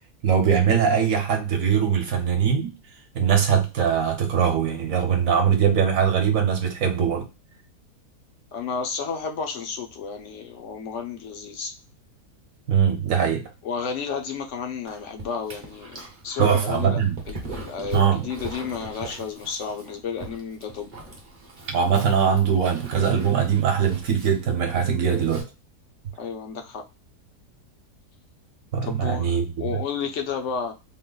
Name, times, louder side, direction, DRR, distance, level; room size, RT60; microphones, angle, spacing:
voice 1, 0.2-2.7 3.1-7.3 12.7-13.4 16.4-17.2 17.9-18.3 21.7-25.5 28.7-29.7, right 7 dB, 60° right, 1.2 m, -21 dB
voice 2, 8.5-11.7 13.6-17.0 17.3-20.9 26.2-26.8 28.8-30.7, left 6 dB, 60° left, 0.8 m, -32 dB
Dog, 14.9-25.4, right 3 dB, 35° right, 0.8 m, -41 dB
3.9 x 2.1 x 3.8 m
omnidirectional pair, 1.8 m